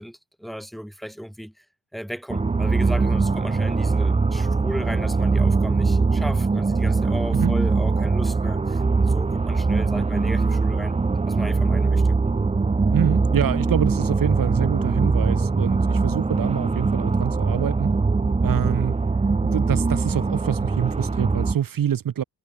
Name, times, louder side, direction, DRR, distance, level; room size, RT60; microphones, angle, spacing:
voice 1, 0.0-1.7 1.9-11.0 11.3-12.2, equal, ahead, 3.5 m, -35 dB
sound 1, 2.3-21.6, right 4 dB, 15° right, 1.0 m, -22 dB
voice 2, 12.9-17.9 18.4-19.0 19.4-22.2, right 9 dB, 55° right, 2.2 m, -26 dB
wide cardioid pair, 165°, 40 cm